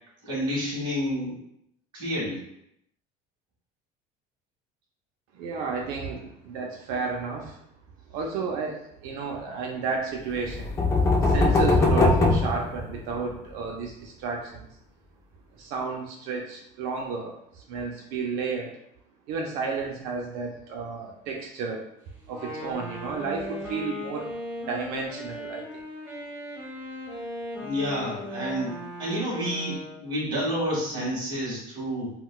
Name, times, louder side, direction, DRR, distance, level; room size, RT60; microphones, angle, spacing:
voice 1, 0.2-1.4 1.9-2.4 27.5-32.1, equal, 30° right, -6 dB, 1.4 m, -29 dB
voice 2, 5.3-7.6 8.1-10.7 11.2-14.7 15.5-18.8 19.3-21.8 22.3-24.3 24.7-25.8, right 4 dB, 70° right, 1 dB, 0.5 m, -32 dB
sound 1, 10.4-13.3, left 2 dB, 20° left, 0.3 m, -21 dB
Wind instrument woodwind instrument, 22.2-30.2, left 1 dB, 15° right, 1.1 m, -37 dB
3.8 x 2.2 x 2.3 m, 0.77 s
cardioid pair, 165°, 16 cm